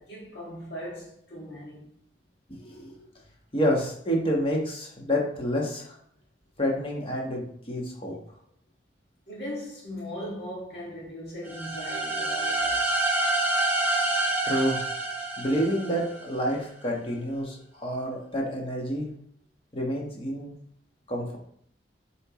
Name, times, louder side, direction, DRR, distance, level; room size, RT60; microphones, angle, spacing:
voice 1, 0.0-1.8 9.3-12.9, equal, 75° left, 2.3 m, -38 dB
voice 2, 2.5-3.0 3.5-6.0 6.6-8.1 14.4-14.8 15.4-19.1 19.7-20.5 21.1-21.4, equal, 30° left, 1.4 m, -28 dB
sound 1, 11.5-16.3, right 2 dB, 10° right, 0.8 m, -27 dB
7.6 x 4.5 x 3.2 m
head